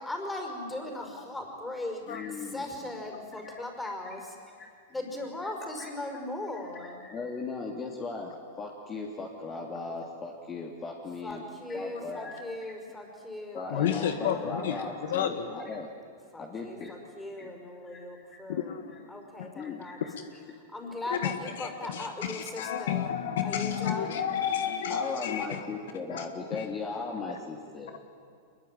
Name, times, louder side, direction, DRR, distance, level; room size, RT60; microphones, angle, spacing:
voice 1, 0.0-2.0 2.5-4.4 4.9-7.0 11.2-14.5 16.3-18.8 19.1-20.0 20.7-23.1 23.4-24.3, left 2 dB, 10° left, 3 dB, 5.5 m, -38 dB
voice 2, 2.1-2.9 3.3-3.5 4.0-4.1 4.6-5.1 5.8-5.9 6.7-11.4 11.7-12.4 13.5-15.9 16.4-16.9 17.4-17.5 17.8-18.3 19.5-20.0 24.9-27.9, left 4 dB, 30° left, 0 dB, 3.0 m, -38 dB
voice 3, 13.6-15.6 18.5-19.0 19.4-19.5 20.1-20.3 21.1-25.6 26.1-26.2 26.5-26.7, left 9 dB, 70° left, 8 dB, 1.7 m, -31 dB
24.0 x 21.5 x 9.4 m, 2.4 s
hypercardioid pair, 110°, 0 cm